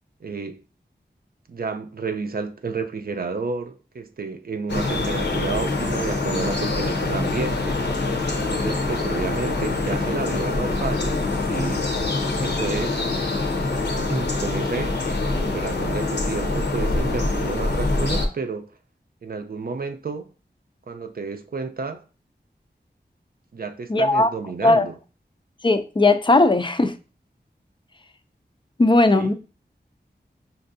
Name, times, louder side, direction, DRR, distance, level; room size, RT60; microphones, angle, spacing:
voice 1, 0.2-0.6 1.5-7.8 8.3-11.9 12.4-13.1 14.0-15.0 15.3-18.7 19.2-20.3 20.9-22.0 23.5-24.9 29.1-29.3, right 4 dB, 55° right, 0.5 m, -31 dB
sound 1, 4.7-18.3, left 2 dB, 70° left, 0.7 m, -25 dB
voice 2, 23.9-24.3 24.6-24.9 25.6-27.0 28.8-29.3, left 2 dB, 25° left, 0.4 m, -17 dB
5.4 x 2.5 x 2.6 m
wide cardioid pair, 65°, 18 cm